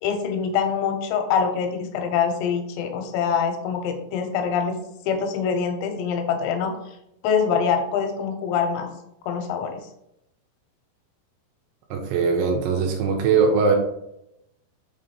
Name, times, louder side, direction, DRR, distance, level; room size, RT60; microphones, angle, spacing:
voice 1, 0.0-4.8 5.1-7.0 7.2-8.9 9.3-9.8, left 6 dB, 90° left, 5 dB, 3.7 m, -24 dB
voice 2, 11.9-13.8, right 5 dB, 85° right, 1 dB, 2.6 m, -21 dB
7.4 x 2.9 x 5.2 m, 0.82 s
omnidirectional pair, 5.9 m